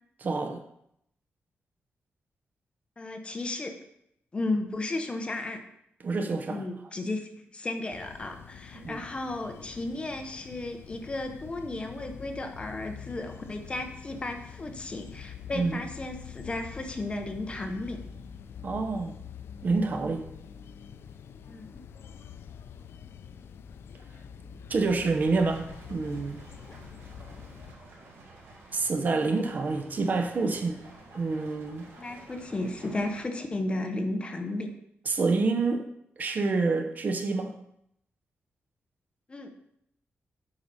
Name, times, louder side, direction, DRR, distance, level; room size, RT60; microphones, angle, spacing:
voice 1, 0.2-0.6 6.0-6.7 8.7-9.0 15.5-15.8 18.6-19.2 19.6-20.2 24.7-26.4 28.7-30.8 31.1-31.9 35.1-35.9 36.2-37.5, right 3 dB, 45° right, 6 dB, 0.7 m, -27 dB
voice 2, 3.0-3.7 4.3-5.6 6.5-18.0 21.5-21.8 26.7-26.8 31.9-34.7 39.3-39.5, left 2 dB, 25° left, 5 dB, 0.8 m, -34 dB
sound 1, 7.9-27.7, left 7 dB, 70° left, 0.4 m, -46 dB
sound 2, 25.0-33.2, right 2 dB, 80° right, 2.0 m, -51 dB
7.9 x 5.4 x 4.1 m, 0.75 s
wide cardioid pair, 150°, 4 cm